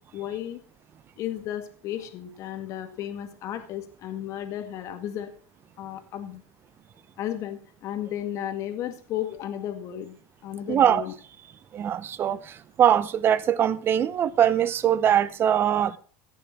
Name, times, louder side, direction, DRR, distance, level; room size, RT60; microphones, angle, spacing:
voice 1, 0.1-0.6 1.2-5.3 5.8-6.4 7.2-10.2 10.4-11.1, left 11 dB, 45° left, 2.0 m, -34 dB
voice 2, 10.7-11.0 11.7-16.0, right 10 dB, 30° right, 0.8 m, -22 dB
16.5 x 7.0 x 6.0 m
supercardioid pair, 140°, 7 cm